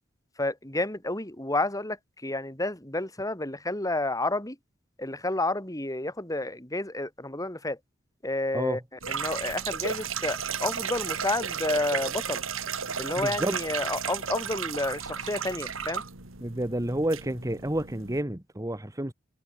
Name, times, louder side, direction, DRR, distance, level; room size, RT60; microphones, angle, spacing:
voice 1, 0.4-4.6 5.0-7.8 8.2-12.4 13.0-16.0, left 2 dB, 15° left, 3.9 m, -30 dB
sound 1, 9.0-18.2, right 7 dB, 85° right, 3.5 m, -34 dB
voice 2, 13.2-13.6 16.4-19.1, right 1 dB, 15° right, 1.5 m, -30 dB
head